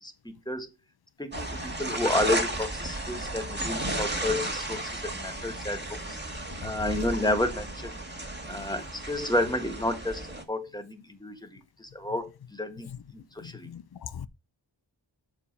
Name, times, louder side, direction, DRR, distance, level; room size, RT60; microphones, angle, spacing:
voice 1, 0.0-0.7 1.2-6.2 6.6-8.0 8.5-11.5 11.8-13.7, left 1 dB, 10° left, 1.4 m, -31 dB
sound 1, 1.3-10.4, right 2 dB, 25° right, 1.8 m, -34 dB
voice 2, 13.6-14.3, left 8 dB, 55° left, 0.6 m, -40 dB
6.7 x 5.1 x 5.2 m
wide cardioid pair, 50°, 45 cm